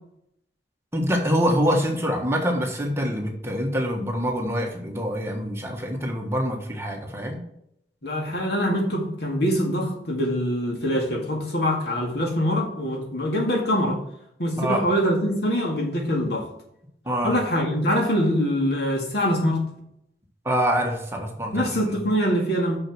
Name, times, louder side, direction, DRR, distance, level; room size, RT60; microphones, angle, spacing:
voice 1, 0.9-7.4 14.6-14.8 17.1-17.4 20.4-21.7, equal, 15° right, 1 dB, 1.3 m, -25 dB
voice 2, 8.0-14.0 14.4-16.5 17.2-19.6 21.5-22.8, equal, 65° left, 1 dB, 2.1 m, -24 dB
6.3 x 6.3 x 6.0 m, 0.76 s
head